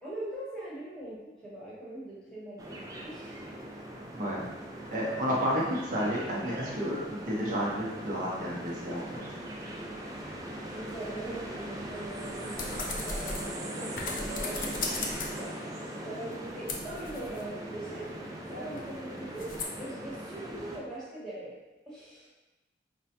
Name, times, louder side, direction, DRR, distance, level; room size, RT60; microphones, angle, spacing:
voice 1, 0.0-1.2 1.4-3.5 10.7-14.8 15.3-15.5 16.0-18.1 18.5-19.5 19.8-21.6 21.9-22.3, right 1 dB, 5° left, -9 dB, 1.0 m, -41 dB
sound 1, 2.6-20.8, right 1 dB, 20° right, 0.3 m, -40 dB
voice 2, 4.1-4.5 4.9-9.2, equal, 45° right, -5 dB, 0.7 m, -31 dB
sound 2, 12.6-15.5 16.0-19.7, left 3 dB, 50° left, 0.5 m, -39 dB
5.1 x 2.1 x 2.8 m, 1.1 s
head